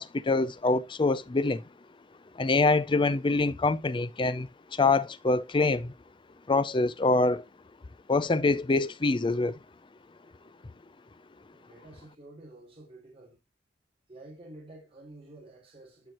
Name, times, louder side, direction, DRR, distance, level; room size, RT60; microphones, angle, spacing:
voice 1, 0.0-1.6 2.4-5.9 6.5-7.4 8.1-9.6, left 3 dB, 25° left, 0.5 m, -25 dB
voice 2, 11.5-13.4 14.1-16.1, right 2 dB, 35° right, 3.5 m, -50 dB
12.0 x 4.7 x 3.0 m
head